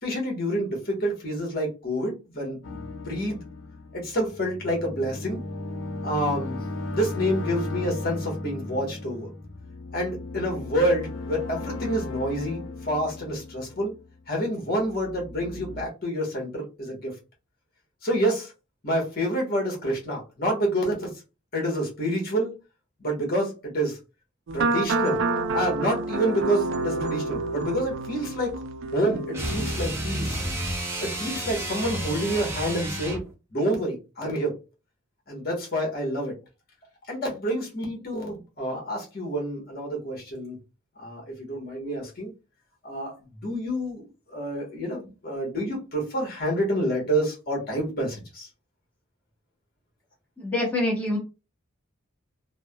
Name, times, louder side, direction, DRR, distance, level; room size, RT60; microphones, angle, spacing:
voice 1, 0.0-3.4 3.9-5.4 6.0-6.6 6.9-9.3 9.9-13.9 14.3-17.1 18.0-18.5 18.8-21.1 21.5-22.5 23.0-24.0 24.5-25.2 25.5-28.5 28.9-30.4 31.0-33.2 33.5-34.6 35.3-36.3 37.1-40.6 41.0-42.3 42.8-43.1 43.4-48.5, right 1 dB, 45° left, 1.1 m, -28 dB
sound 1, 2.6-14.3 14.7-15.8, left 2 dB, 65° left, 0.5 m, -36 dB
sound 2, 24.5-29.7, right 3 dB, 65° right, 0.4 m, -28 dB
sound 3, 29.3-33.3, right 1 dB, 10° right, 0.5 m, -31 dB
voice 2, 50.4-51.2, left 1 dB, 10° left, 0.9 m, -25 dB
3.2 x 2.1 x 2.2 m
head